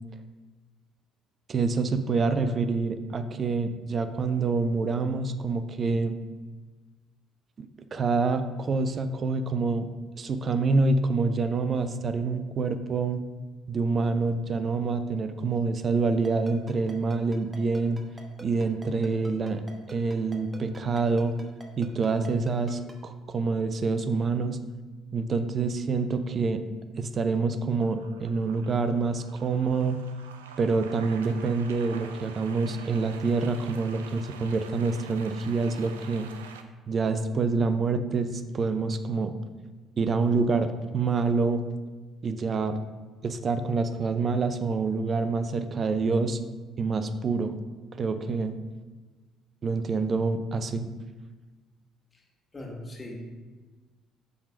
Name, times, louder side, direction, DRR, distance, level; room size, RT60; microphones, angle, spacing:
voice 1, 1.5-6.1 7.6-9.9 10.2-13.2 13.7-18.0 18.4-21.3 21.8-24.6 25.1-26.6 27.0-30.0 30.6-36.3 36.9-39.3 40.0-41.6 42.2-42.8 43.2-46.4 46.8-47.6 48.0-48.5 49.6-50.9, right 4 dB, 45° right, 10 dB, 0.6 m, -27 dB
Ringtone, 16.2-22.9, right 2 dB, 20° right, 1.1 m, -45 dB
sound 1, 27.1-27.4 27.8-36.6, right 6 dB, 90° right, 0.4 m, -47 dB
voice 2, 52.5-53.4, left 1 dB, 25° left, -1 dB, 1.9 m, -39 dB
6.9 x 3.8 x 5.0 m, 1.3 s
hypercardioid pair, 55°, 0 cm